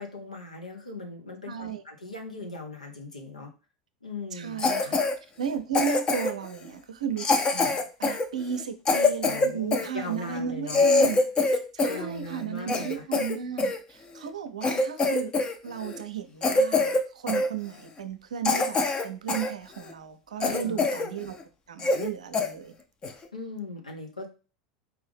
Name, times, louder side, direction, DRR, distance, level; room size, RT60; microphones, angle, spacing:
voice 1, 0.0-3.5 4.0-5.0 7.5-7.7 9.2-10.8 11.9-13.0 20.4-20.8 23.3-24.3, left 2 dB, 85° left, 1 dB, 0.9 m, -39 dB
voice 2, 1.5-1.8 4.3-5.1 5.4-11.2 11.7-15.3 15.6-21.3 21.7-22.7, right 7 dB, 75° right, 8 dB, 0.5 m, -34 dB
Cough, 4.6-5.1 5.7-6.5 7.2-9.9 10.4-10.5 10.7-12.0 12.3-13.8 14.3-14.4 14.6-15.5 15.8-16.0 16.4-17.0 17.3-17.5 18.0-18.1 18.4-19.5 19.9-20.0 20.4-21.1 21.4-21.5 21.8-22.1 22.3-22.5 23.0-23.2, left 3 dB, 25° left, 0.6 m, -24 dB
4.6 x 2.7 x 3.3 m, 0.34 s
figure-of-eight pair, 80°, 4 cm